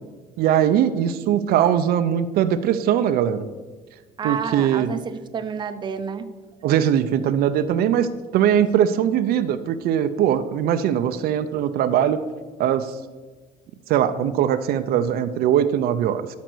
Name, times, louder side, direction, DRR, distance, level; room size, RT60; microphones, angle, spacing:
voice 1, 0.4-3.5 4.2-4.9 6.6-12.2 12.6-12.9 13.9-16.4, right 9 dB, 80° right, 10 dB, 0.6 m, -21 dB
voice 2, 4.2-6.3, right 6 dB, 30° right, 9 dB, 0.6 m, -29 dB
12.5 x 5.2 x 6.2 m, 1.3 s
cardioid pair, 155°, 16 cm